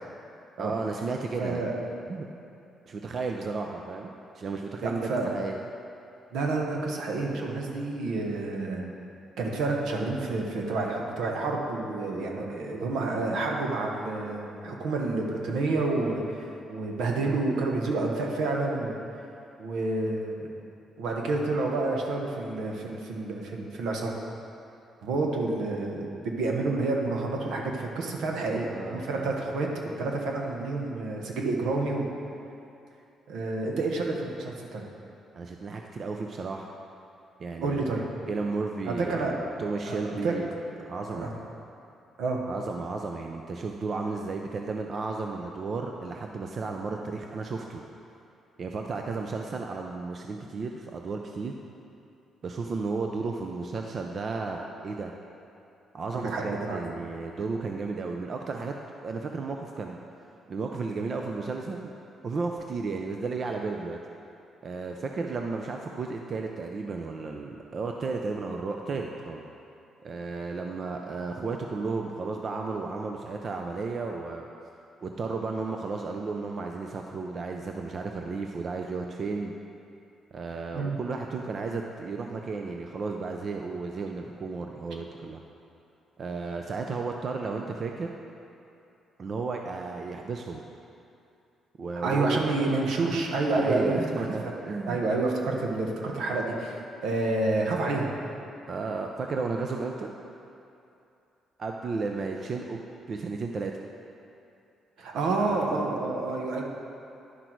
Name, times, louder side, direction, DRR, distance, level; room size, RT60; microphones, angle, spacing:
voice 1, 0.6-1.6 2.1-2.2 2.9-5.6 28.7-29.3 35.3-36.7 37.4-40.6 40.8-41.3 42.5-47.8 48.6-51.6 52.4-55.1 55.9-58.7 59.0-60.0 60.5-61.9 62.2-64.0 64.6-69.4 70.0-74.5 75.0-79.5 80.3-85.4 86.2-88.1 89.2-90.6 91.8-92.4 93.5-95.0 98.7-100.1 101.6-102.8 103.1-103.8 105.4-105.8, right 4 dB, 50° right, 2 dB, 0.5 m, -33 dB
voice 2, 1.4-1.7 4.8-5.3 6.3-8.9 9.4-18.9 19.6-20.5 21.0-24.1 25.0-29.7 30.0-32.0 33.3-34.8 37.6-38.0 38.9-39.3 39.8-40.3 41.1-41.3 42.2-42.4 56.1-56.8 80.7-81.0 92.0-94.0 94.4-94.5 94.9-96.8 97.0-98.1 105.0-106.6, right 3 dB, 80° right, 0 dB, 1.1 m, -29 dB
10.0 x 6.0 x 4.6 m, 2.7 s
cardioid pair, 90°, 0 cm